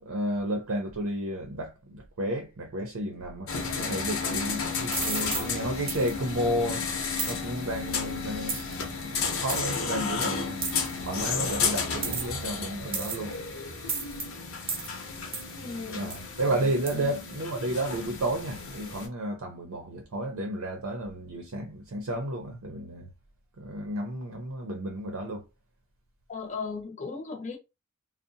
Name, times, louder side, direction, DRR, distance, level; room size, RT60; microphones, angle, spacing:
voice 1, 0.0-6.9 7.2-10.6 11.0-13.3 15.9-23.1 23.6-25.4, right 1 dB, 85° right, 0.6 m, -32 dB
sound 1, 3.5-19.1, left 5 dB, 75° left, 0.7 m, -33 dB
sound 2, 4.9-5.5 5.9-6.1 7.2-7.4 8.5-8.7 9.5-9.6 10.6-10.9 12.0-12.4 12.9-13.3 13.9-14.3 14.7-14.9 15.3-15.5 16.1-16.2 16.9-17.0, right 5 dB, 25° right, 0.5 m, -32 dB
voice 2, 15.5-16.1 16.9-17.1 26.3-27.6, left 4 dB, 35° left, 0.6 m, -37 dB
2.7 x 2.0 x 2.6 m
head